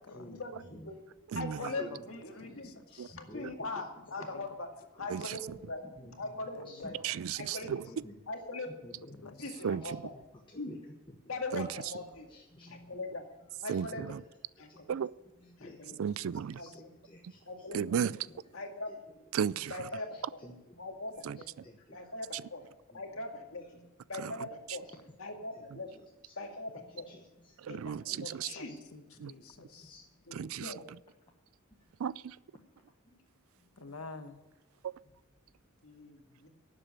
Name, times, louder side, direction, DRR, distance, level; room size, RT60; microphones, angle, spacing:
voice 1, 0.3-1.0 1.4-2.7 3.1-4.7 5.0-7.0 7.4-7.7 8.3-8.7 9.4-10.1 10.5-10.8 11.3-12.3 12.7-13.3 13.6-14.2 14.6-14.9 15.6-16.0 16.6-16.9 17.5-17.8 18.5-18.9 19.7-20.4 20.8-21.5 21.9-22.6 22.9-23.6 24.1-24.9 25.2-25.9 26.4-27.1 27.7-28.7 30.3-30.8 35.8-36.5, left 2 dB, 65° left, 2.0 m, -41 dB
voice 2, 1.6-2.0 2.4-3.2 4.2-4.5 5.0-5.1 6.5-6.9 9.2-9.6 15.6-16.0 16.6-16.8 28.5-30.0 33.8-34.4, left 3 dB, 80° left, 1.2 m, -49 dB
voice 3, 2.5-3.5 6.0-6.1 6.7-6.9 7.3-8.2 8.8-9.3 9.6-9.9 10.5-10.8 11.8-11.9 12.3-13.0 13.7-14.1 14.7-14.9 15.6-15.9 16.6-16.7 17.0-17.4 17.7-18.3 20.4-20.8 21.6-22.0 22.9-23.0 25.9-26.3 27.1-27.5 27.9-28.6 29.2-29.3 29.6-30.0, left 1 dB, 20° left, 1.1 m, -52 dB
voice 4, 7.0-7.8 9.6-9.8 11.5-11.7 13.7-14.2 14.9-15.1 16.0-16.6 17.7-18.2 19.3-19.7 21.3-21.4 24.2-24.3 27.6-28.5 29.2-29.3 30.3-30.7 32.0-32.4 34.8-34.9, right 8 dB, 70° right, 0.3 m, -34 dB
11.5 x 7.7 x 8.8 m
head